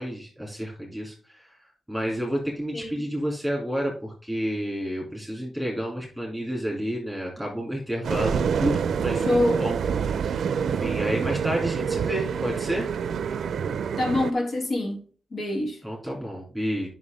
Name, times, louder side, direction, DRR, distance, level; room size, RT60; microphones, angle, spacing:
voice 1, 0.0-1.5 1.9-12.9 15.8-16.9, equal, ahead, 2.9 m, -30 dB
sound 1, 8.0-14.3, right 7 dB, 80° right, 0.5 m, -27 dB
voice 2, 9.2-9.7 14.0-15.0 15.3-15.8, left 1 dB, 55° left, 2.0 m, -25 dB
9.4 x 5.7 x 3.5 m
wide cardioid pair, 115°, 0 cm